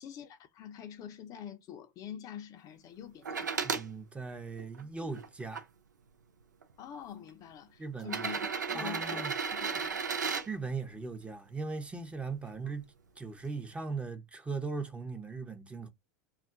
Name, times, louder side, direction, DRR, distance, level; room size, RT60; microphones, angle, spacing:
voice 1, 0.0-3.7 6.8-8.4 8.7-10.0 12.6-12.7, left 9 dB, 40° left, 0.5 m, -46 dB
sound 1, 3.3-3.9 4.6-5.6 6.6-6.7 8.0-10.5 12.3-12.4, right 5 dB, 90° right, 0.5 m, -34 dB
voice 2, 3.6-5.7 7.8-8.3 8.7-9.3 10.5-12.8 13.2-15.9, right 4 dB, 10° right, 0.7 m, -39 dB
2.3 x 2.1 x 3.6 m
hypercardioid pair, 90°, 9 cm